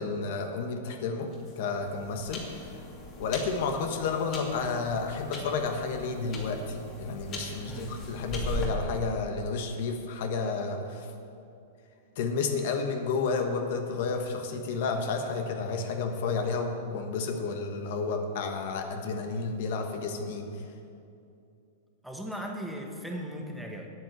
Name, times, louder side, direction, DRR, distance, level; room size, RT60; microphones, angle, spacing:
voice 1, 0.0-2.8 3.2-11.1 12.2-20.5, left 4 dB, 60° left, 5 dB, 1.3 m, -31 dB
sound 1, 1.3-8.7, equal, 35° left, 2.6 m, -40 dB
voice 2, 22.0-23.9, equal, ahead, 1 dB, 1.4 m, -37 dB
9.7 x 8.1 x 7.9 m, 2.6 s
hypercardioid pair, 120°, 0 cm